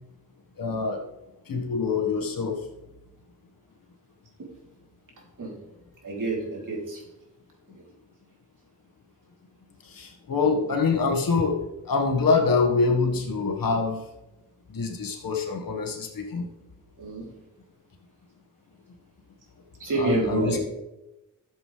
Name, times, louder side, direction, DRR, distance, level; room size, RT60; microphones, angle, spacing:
voice 1, 0.6-1.0 1.5-2.6 9.8-14.0 14.7-16.5 19.9-20.6, left 4 dB, 80° left, 2 dB, 1.8 m, -25 dB
voice 2, 6.0-7.0 10.4-10.6 17.0-17.3 19.8-20.6, right 3 dB, 65° right, -2 dB, 3.3 m, -28 dB
13.5 x 7.5 x 3.4 m, 0.95 s
wide cardioid pair, 95°, 34 cm